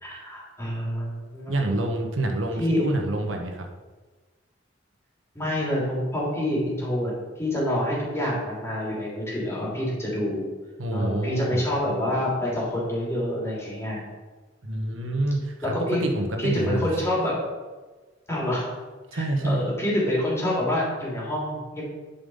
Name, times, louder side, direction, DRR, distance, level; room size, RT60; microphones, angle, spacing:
voice 1, 0.0-1.6 2.6-2.9 5.3-10.4 10.9-14.0 14.8-15.0 15.6-16.0 16.4-17.4 18.3-18.7 19.1-21.9, left 1 dB, 15° left, -5 dB, 3.3 m, -27 dB
voice 2, 1.5-3.6 10.8-11.6 14.6-15.7 16.0-17.0 19.1-19.6, right 2 dB, 75° right, 3 dB, 1.3 m, -27 dB
11.0 x 5.5 x 5.6 m, 1.3 s
head